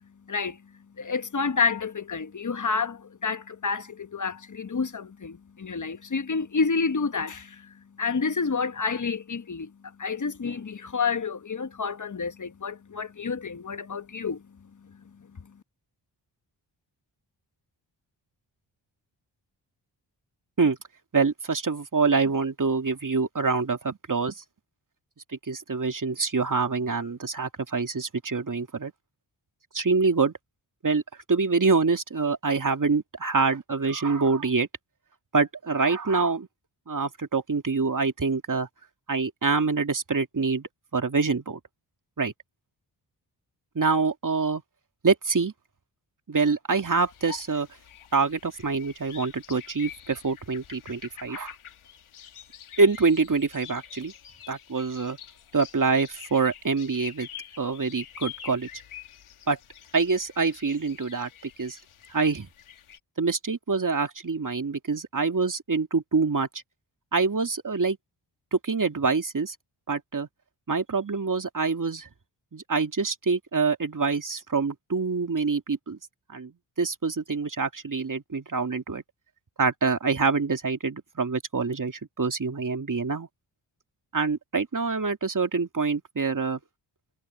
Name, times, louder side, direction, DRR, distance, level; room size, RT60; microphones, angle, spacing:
voice 1, 0.3-0.7 1.0-9.7 10.0-15.5, left 5 dB, 40° left, 1.3 m, -29 dB
voice 2, 21.1-24.4 25.5-28.9 29.7-30.3 30.8-31.0 31.3-34.7 35.3-36.5 36.9-38.7 39.1-41.6 42.2-42.3 43.7-44.6 45.0-45.5 46.3-47.7 48.1-51.5 52.8-54.1 54.5-55.2 55.5-57.3 57.6-58.7 59.5-59.6 59.9-61.8 62.1-62.5 63.2-66.5 67.1-68.0 68.5-69.6 69.9-70.3 70.7-72.1 72.5-76.0 76.3-76.5 76.8-79.0 79.6-83.3 84.1-86.6, right 4 dB, 40° right, 2.4 m, -25 dB
sound 1, 46.9-63.0, left 9 dB, 80° left, 1.9 m, -46 dB
supercardioid pair, 40°, 49 cm